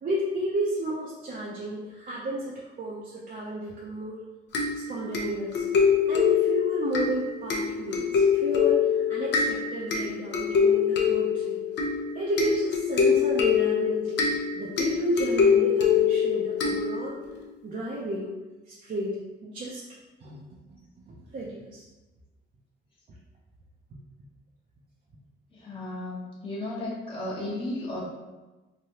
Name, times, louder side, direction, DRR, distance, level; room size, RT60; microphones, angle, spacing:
voice 1, 0.0-4.2 4.7-5.6 6.1-11.6 12.1-14.3 14.6-17.2 17.6-18.3 18.7-19.8 20.2-20.6 21.1-21.8, right 1 dB, 45° right, -5 dB, 0.5 m, -32 dB
sound 1, 4.5-17.3, left 6 dB, 60° left, 0.6 m, -24 dB
voice 2, 25.5-28.0, left 1 dB, 25° left, -6 dB, 0.9 m, -34 dB
3.2 x 2.2 x 2.8 m, 1.1 s
cardioid pair, 90°, 20 cm